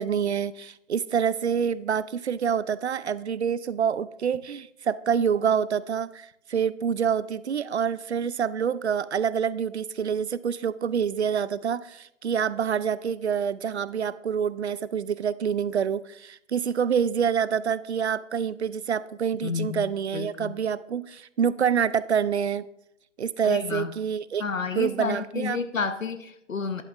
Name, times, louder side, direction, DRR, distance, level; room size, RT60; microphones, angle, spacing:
voice 1, 0.0-22.7 23.2-24.4 24.8-25.6, right 7 dB, 60° right, 18 dB, 0.5 m, -27 dB
voice 2, 19.4-20.5 23.4-23.9 24.4-26.8, left 5 dB, 80° left, 10 dB, 0.9 m, -31 dB
11.0 x 11.0 x 2.5 m, 0.78 s
figure-of-eight pair, 145°, 39 cm